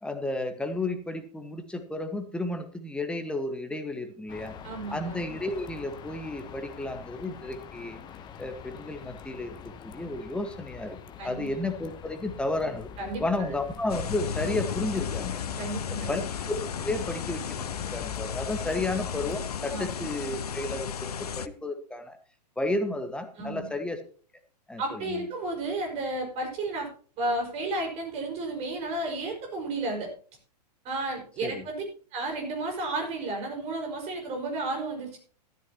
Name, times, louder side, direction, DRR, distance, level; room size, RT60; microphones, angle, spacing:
voice 1, 0.0-4.6 4.9-8.0 8.4-9.5 9.8-11.0 11.2-12.9 13.2-15.4 15.8-16.2 16.5-22.2 22.6-24.0 24.7-25.2 31.4-31.6, left 2 dB, 5° left, 7 dB, 1.5 m, -32 dB
sound 1, 4.3-19.4, left 7 dB, 20° left, 0.9 m, -44 dB
voice 2, 4.6-5.2 11.2-11.5 13.0-13.2 15.6-16.2 18.7-18.8 19.7-19.9 23.4-23.7 24.8-26.9 27.2-30.1 30.8-31.8 32.1-35.2, right 2 dB, 30° right, 2 dB, 5.1 m, -32 dB
sound 2, 13.9-21.5, left 7 dB, 65° left, 0.7 m, -34 dB
14.5 x 13.5 x 2.9 m, 0.42 s
figure-of-eight pair, 105°, 21 cm